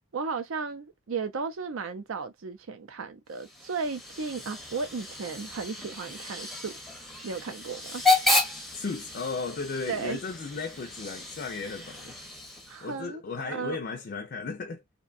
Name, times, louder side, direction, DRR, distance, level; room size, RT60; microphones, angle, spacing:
voice 1, 0.1-6.7 7.2-8.0 9.9-10.2 12.7-13.8, right 4 dB, 70° right, 0.5 m, -35 dB
Hiss / Train / Alarm, 3.3-13.0, left 2 dB, ahead, 0.6 m, -32 dB
voice 2, 8.7-12.1 12.8-14.8, left 4 dB, 45° left, 0.4 m, -35 dB
2.7 x 2.2 x 2.4 m
head